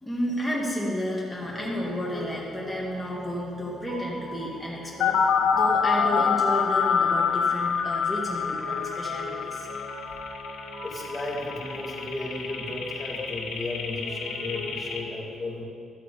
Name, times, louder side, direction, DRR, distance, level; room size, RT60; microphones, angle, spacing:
voice 1, 0.0-9.8, equal, 5° left, -5 dB, 2.0 m, -32 dB
Piano, 1.3-15.0, left 1 dB, 50° right, 2.8 m, -43 dB
sound 1, 5.0-15.0, left 6 dB, 90° left, 1.1 m, -26 dB
voice 2, 10.8-15.6, left 2 dB, 20° left, -3 dB, 2.5 m, -34 dB
12.5 x 7.7 x 4.9 m, 2.2 s
cardioid pair, 90°, 0 cm